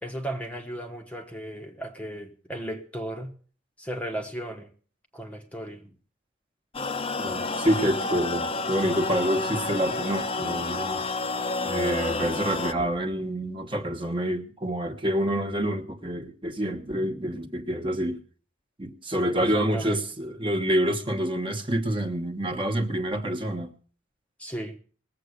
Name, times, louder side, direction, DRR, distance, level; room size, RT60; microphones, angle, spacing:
voice 1, 0.0-3.3 3.8-4.7 5.1-5.9 19.4-20.0 24.4-24.8, right 1 dB, 5° left, 1.0 m, -35 dB
sound 1, 6.7-12.7, left 3 dB, 30° left, 0.8 m, -30 dB
voice 2, 7.2-11.0 11.6-18.2 18.8-23.7, equal, 25° right, 1.3 m, -27 dB
19.5 x 7.7 x 6.5 m
head